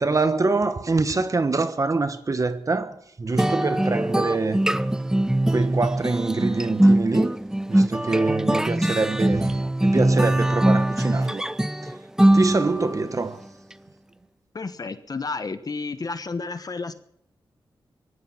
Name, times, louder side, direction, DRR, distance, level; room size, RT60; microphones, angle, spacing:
voice 1, 0.0-4.6 5.5-7.4 7.7-11.4 12.3-13.4, right 3 dB, 40° right, 1.3 m, -25 dB
sound 1, 3.4-13.0, right 1 dB, 5° right, 0.6 m, -22 dB
voice 2, 14.5-16.9, left 4 dB, 45° left, 1.1 m, -31 dB
18.0 x 14.0 x 5.8 m
cardioid pair, 70°, 9 cm